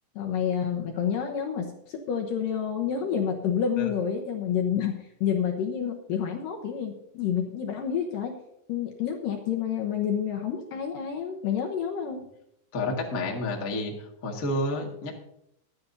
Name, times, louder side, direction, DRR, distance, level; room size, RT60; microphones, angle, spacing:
voice 1, 0.2-4.9 5.2-8.4 8.7-12.2, left 8 dB, 70° left, 2 dB, 2.3 m, -29 dB
voice 2, 12.7-15.1, left 2 dB, 35° left, -1 dB, 1.3 m, -30 dB
22.5 x 9.6 x 2.8 m, 0.77 s
omnidirectional pair, 4.9 m